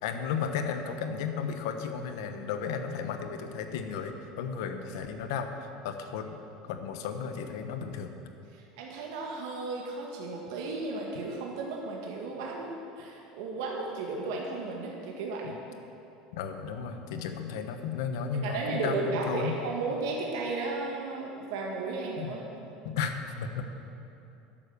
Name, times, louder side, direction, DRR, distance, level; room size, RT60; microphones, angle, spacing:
voice 1, 0.0-6.4 6.7-8.1 15.4-15.5 16.3-19.5 22.2-22.3 22.8-23.6, left 6 dB, 80° left, 6 dB, 1.0 m, -34 dB
voice 2, 8.5-15.5 18.4-22.4, right 3 dB, 75° right, -1 dB, 1.6 m, -34 dB
12.0 x 7.4 x 6.8 m, 2.8 s
cardioid pair, 180°, 2 cm